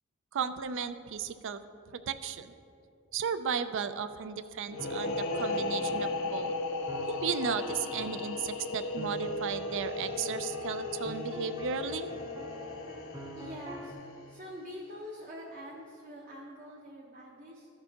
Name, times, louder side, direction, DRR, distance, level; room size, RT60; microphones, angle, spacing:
voice 1, 0.3-1.6 2.1-2.5 3.1-6.5 7.1-12.1, right 7 dB, 60° right, 11 dB, 0.4 m, -35 dB
sound 1, 4.7-14.2, left 3 dB, 65° left, 0.6 m, -36 dB
sound 2, 4.7-13.9, right 1 dB, 20° right, 0.7 m, -45 dB
voice 2, 13.4-14.0 14.3-17.7, equal, 40° right, -4 dB, 0.9 m, -45 dB
14.5 x 6.7 x 2.8 m, 2.6 s
head